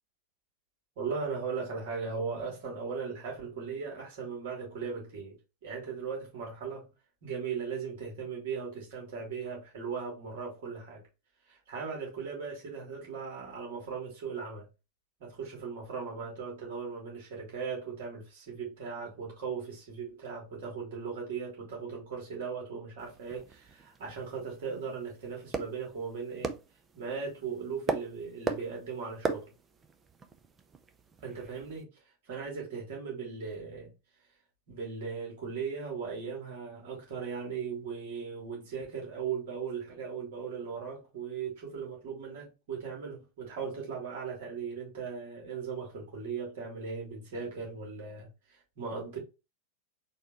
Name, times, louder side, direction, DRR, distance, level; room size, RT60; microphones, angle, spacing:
voice 1, 1.0-5.3 5.6-6.9 7.2-11.0 11.5-14.6 15.2-26.5 26.9-29.5 31.2-31.9 32.3-33.9 34.7-48.3 48.8-49.2, right 5 dB, 55° right, 2.3 m, -38 dB
sound 1, 23.0-31.8, right 4 dB, 20° right, 0.5 m, -40 dB
4.3 x 2.9 x 3.7 m
figure-of-eight pair, 90°, 0 cm